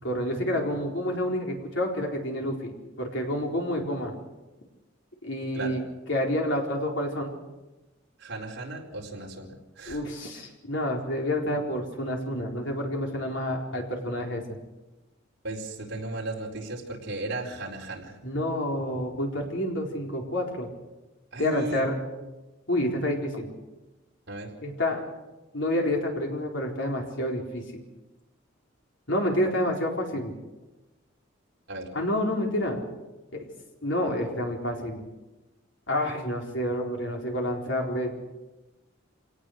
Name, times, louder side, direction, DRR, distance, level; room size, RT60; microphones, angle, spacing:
voice 1, 0.0-4.1 5.2-5.8 6.1-7.3 9.9-14.6 18.2-20.7 21.4-22.0 22.7-23.5 24.6-25.0 25.5-27.6 29.1-30.3 31.9-32.8 33.3-33.4 33.8-35.0 35.9-38.1, left 1 dB, 65° left, 1 dB, 4.2 m, -28 dB
voice 2, 8.2-10.0 15.4-18.2 21.3-21.9 22.2-22.3 24.3-24.5 31.7-31.9, right 2 dB, 55° right, -2 dB, 4.4 m, -35 dB
25.5 x 18.5 x 6.6 m, 1.1 s
head